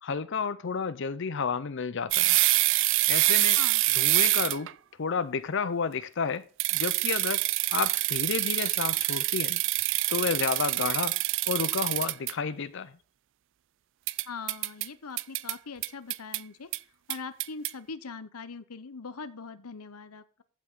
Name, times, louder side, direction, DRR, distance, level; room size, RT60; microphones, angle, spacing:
voice 1, 0.0-2.4 3.1-3.6 3.9-4.7 5.0-6.4 6.7-7.4 7.7-9.6 10.1-11.2 11.5-12.9, left 5 dB, 55° left, 0.5 m, -31 dB
sound 1, 2.1-4.7 6.6-12.3 14.1-14.9 15.2-15.5 15.8-16.4 16.7-16.8 17.1-17.7, right 19 dB, 55° right, 0.3 m, -26 dB
voice 2, 14.3-16.7 17.1-20.4, left 4 dB, 85° left, 0.9 m, -41 dB
14.5 x 5.9 x 3.7 m
head